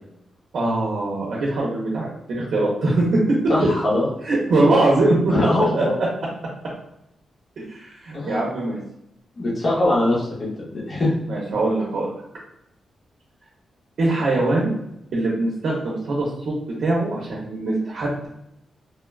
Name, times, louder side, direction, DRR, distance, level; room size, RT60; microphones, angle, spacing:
voice 1, 0.5-3.2 4.2-5.3 5.7-5.8 7.6-8.8 11.3-12.1 14.0-14.7 15.1-18.3, right 2 dB, 60° right, -4 dB, 0.6 m, -22 dB
voice 2, 3.5-4.1 5.3-5.9 8.1-8.4 9.4-11.1, left 1 dB, 35° left, -5 dB, 0.7 m, -22 dB
3.0 x 2.2 x 2.3 m, 0.81 s
wide cardioid pair, 180°, 0 cm